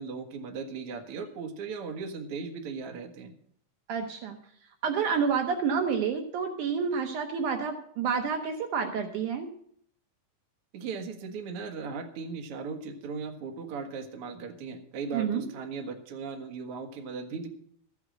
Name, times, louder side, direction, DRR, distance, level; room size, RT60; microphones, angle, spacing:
voice 1, 0.0-3.3 10.7-17.5, right 5 dB, 50° right, 4 dB, 2.0 m, -37 dB
voice 2, 3.9-4.4 4.8-9.5 15.1-15.5, right 6 dB, 70° right, 5 dB, 2.3 m, -29 dB
14.0 x 8.3 x 6.4 m, 0.65 s
omnidirectional pair, 3.9 m